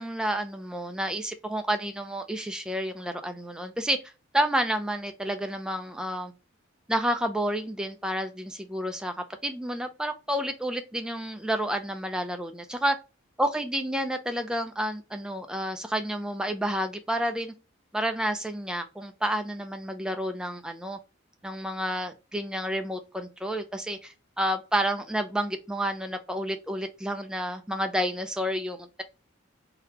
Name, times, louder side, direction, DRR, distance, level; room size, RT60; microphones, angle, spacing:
voice 1, 0.0-6.3 6.9-9.1 9.4-13.0 13.4-17.5 17.9-21.0 21.4-29.0, equal, 5° right, 0.4 m, -30 dB
3.9 x 2.8 x 2.8 m
head